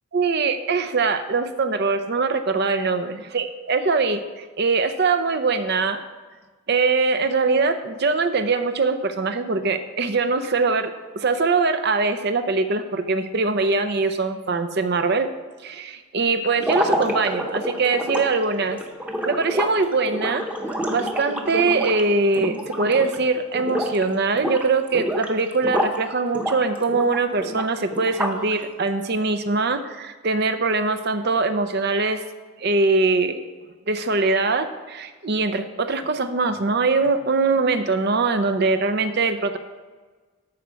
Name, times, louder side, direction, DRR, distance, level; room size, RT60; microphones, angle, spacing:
voice 1, 0.1-3.1 3.3-6.0 6.7-15.3 15.6-18.8 19.2-20.4 20.7-32.2 32.6-33.4 33.9-39.6, right 3 dB, 45° right, 9 dB, 0.6 m, -22 dB
sound 1, 16.6-23.2 23.5-24.0 24.3-26.0 26.3-28.5, equal, 5° right, 0.9 m, -28 dB
13.5 x 4.6 x 6.3 m, 1.4 s
head